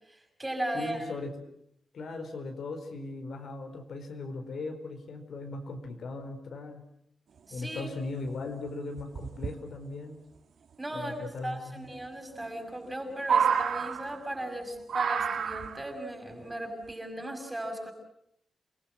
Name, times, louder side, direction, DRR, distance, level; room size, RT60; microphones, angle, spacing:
voice 1, 0.1-1.0 7.5-7.9 10.8-17.9, right 1 dB, 10° right, 2 dB, 6.3 m, -37 dB
voice 2, 0.7-1.3 1.9-6.8 7.5-10.2 10.9-11.9, left 3 dB, 75° left, 5 dB, 4.5 m, -38 dB
sound 1, 7.9-8.0 8.3-8.4 9.0-9.5 11.1-11.2 12.4-12.9 13.2-14.4 14.9-15.9 16.9-17.0, right 7 dB, 80° right, 1.5 m, -29 dB
29.0 x 21.0 x 7.7 m, 0.74 s
wide cardioid pair, 160°, 0 cm